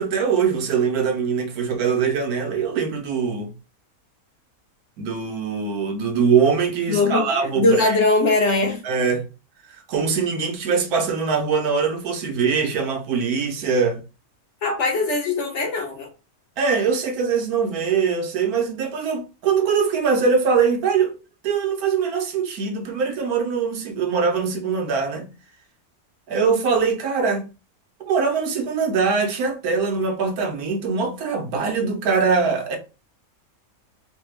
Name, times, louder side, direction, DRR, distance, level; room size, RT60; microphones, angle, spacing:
voice 1, 0.0-3.5 5.0-8.0 8.8-9.3 9.9-14.0 16.6-21.1 21.4-25.3 26.3-27.4 28.0-32.8, right 5 dB, 85° right, 1.2 m, -22 dB
voice 2, 6.9-8.8 14.6-16.1, left 3 dB, 60° left, 1.1 m, -21 dB
3.3 x 2.1 x 3.1 m
omnidirectional pair, 1.5 m